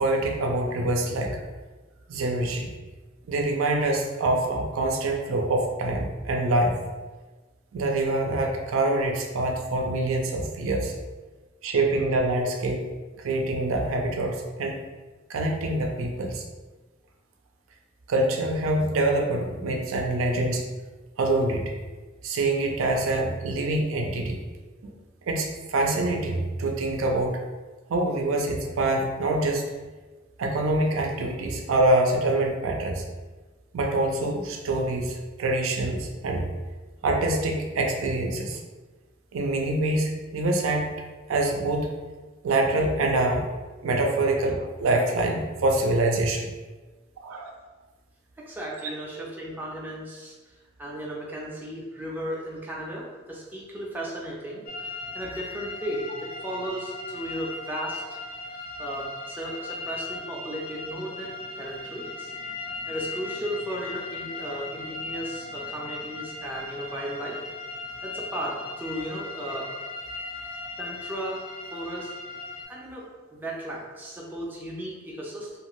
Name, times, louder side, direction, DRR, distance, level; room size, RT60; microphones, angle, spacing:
voice 1, 0.0-1.4 2.1-2.7 3.3-6.8 7.7-10.9 11.6-12.8 13.2-14.8 15.3-16.4 18.1-20.7 21.2-21.7 22.2-24.4 24.8-24.9 25.3-27.4 27.9-29.7 30.4-33.0 33.7-36.5 37.0-38.6 39.3-40.9 41.3-41.9 42.4-43.4 43.8-46.5 47.2-47.5 48.8-48.9, right 2 dB, 85° right, 2 dB, 0.4 m, -25 dB
voice 2, 48.5-50.3 50.8-58.2 58.8-62.3 62.6-67.4 68.0-69.7 70.8-71.4 71.7-72.1 72.7-73.0 73.3-75.6, right 1 dB, 10° right, -4 dB, 0.4 m, -35 dB
sound 1, 54.7-72.6, left 3 dB, 45° left, 0.4 m, -38 dB
2.6 x 2.4 x 3.0 m, 1.3 s
head